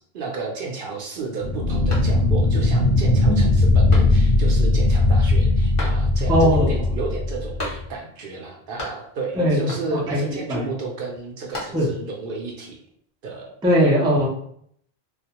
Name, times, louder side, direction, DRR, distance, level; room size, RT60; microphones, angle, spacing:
voice 1, 0.1-12.8 13.2-13.5, right 3 dB, 65° right, 0 dB, 0.7 m, -32 dB
sound 1, 1.4-7.9, left 2 dB, 75° left, 0.8 m, -19 dB
sound 2, 1.9-2.6 3.0-3.1 3.9-4.5 5.8-6.4 7.6-8.2 8.4-9.3 9.7-10.2 11.2-12.1, left 1 dB, 35° left, 0.7 m, -36 dB
voice 2, 6.3-6.8 9.4-9.6 9.9-10.7 11.7-11.9 13.6-14.3, equal, 10° right, -4 dB, 0.3 m, -19 dB
2.2 x 2.1 x 2.8 m, 0.66 s
omnidirectional pair, 1.0 m